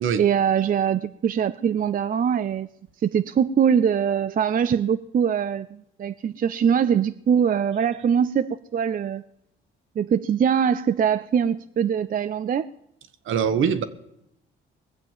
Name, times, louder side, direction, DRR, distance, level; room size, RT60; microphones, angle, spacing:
voice 1, 0.2-2.7 3.0-9.2 10.0-12.7, right 8 dB, 40° right, 12 dB, 0.5 m, -22 dB
voice 2, 13.2-13.8, right 7 dB, 70° right, 11 dB, 1.3 m, -22 dB
20.0 x 7.4 x 7.3 m, 0.80 s
cardioid pair, 75°, 21 cm